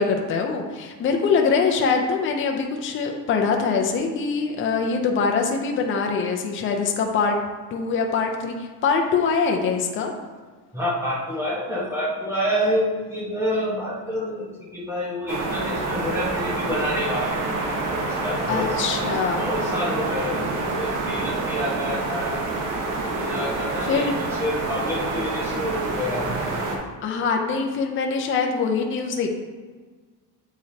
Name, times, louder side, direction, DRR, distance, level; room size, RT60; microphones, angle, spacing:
voice 1, 0.0-7.4 7.7-10.1 18.5-19.5 23.9-24.1 27.0-29.3, left 5 dB, 30° left, 2 dB, 0.6 m, -23 dB
voice 2, 10.7-17.5 17.9-22.4 23.1-26.3, equal, 5° right, -6 dB, 1.2 m, -28 dB
sound 1, 15.3-26.8, right 3 dB, 50° right, 1.0 m, -27 dB
8.0 x 4.8 x 2.8 m, 1.4 s
cardioid pair, 175°, 41 cm